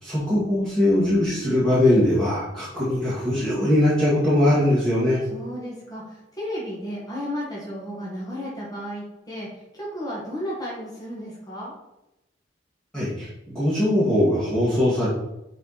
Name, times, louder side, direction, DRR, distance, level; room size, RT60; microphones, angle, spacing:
voice 1, 0.0-5.2 12.9-15.1, left 1 dB, 5° left, -10 dB, 2.0 m, -21 dB
voice 2, 5.3-9.5 9.7-11.7, equal, 20° left, -6 dB, 1.7 m, -33 dB
6.8 x 4.8 x 4.1 m, 0.91 s
head